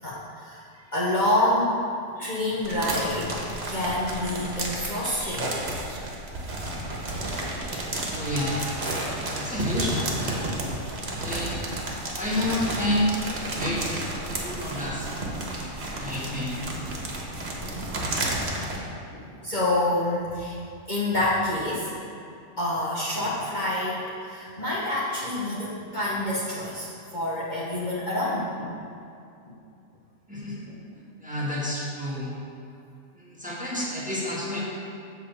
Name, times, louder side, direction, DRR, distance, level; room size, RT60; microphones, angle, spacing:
voice 1, 0.0-0.6 0.9-1.8 2.2-5.8 6.5-6.6 7.2-7.3 19.1-20.6 20.9-22.0 22.6-28.8 29.5-29.6 30.7-30.8, left 1 dB, 40° left, -7 dB, 1.2 m, -27 dB
sound 1, 2.6-18.8, right 1 dB, 55° right, 1.3 m, -32 dB
voice 2, 8.1-8.7 9.3-10.4 11.2-11.5 12.2-13.1 13.6-14.0 14.4-15.1 15.9-16.5 30.3-30.6 31.2-32.4 33.4-34.6, left 1 dB, 5° right, -7 dB, 1.5 m, -29 dB
7.5 x 4.5 x 6.9 m, 2.5 s
omnidirectional pair, 1.3 m